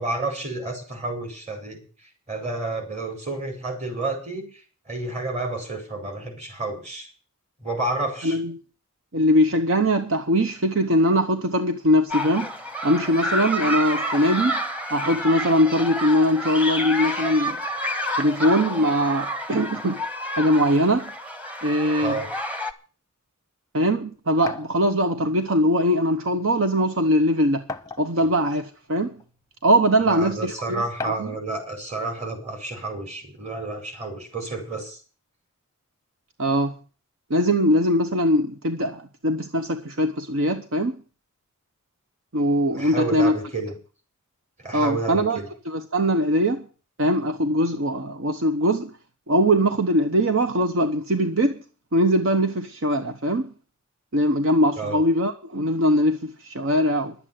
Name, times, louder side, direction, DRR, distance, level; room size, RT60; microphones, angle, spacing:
voice 1, 0.0-1.8 2.3-4.5 4.9-7.1 7.6-8.4 22.0-22.3 30.1-35.0 42.7-43.7 44.6-45.5 54.8-55.0, right 2 dB, 35° right, 4.9 m, -30 dB
voice 2, 8.2-8.5 9.1-12.5 12.8-14.6 14.9-17.6 18.2-20.0 20.4-21.1 21.6-22.2 23.7-27.6 28.0-29.1 29.6-31.3 36.4-36.7 37.3-41.0 42.3-43.4 44.7-45.4 45.7-46.6 47.0-48.9 49.3-51.6 51.9-53.5 54.1-57.1, equal, 65° right, 1.1 m, -21 dB
sound 1, 12.1-22.7, equal, 5° right, 1.2 m, -29 dB
sound 2, 24.5-24.7 25.9-26.0 26.4-26.5 27.7-28.3 29.2-29.3 31.0-31.4, left 3 dB, 15° left, 0.8 m, -34 dB
11.5 x 8.3 x 9.3 m
head